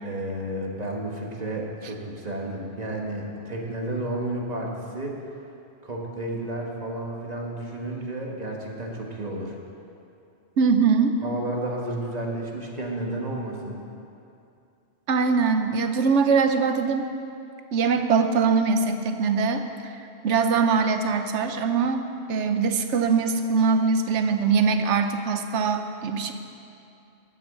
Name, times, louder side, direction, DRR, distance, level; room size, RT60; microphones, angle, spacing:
voice 1, 0.0-5.2 5.8-9.6 11.2-13.8, right 1 dB, 35° right, -1 dB, 1.5 m, -32 dB
voice 2, 10.6-11.2 15.1-17.1 17.7-19.9 20.2-22.0 22.3-26.3, right 5 dB, 80° right, 7 dB, 1.1 m, -22 dB
11.5 x 6.3 x 8.2 m, 2.6 s
omnidirectional pair, 1.2 m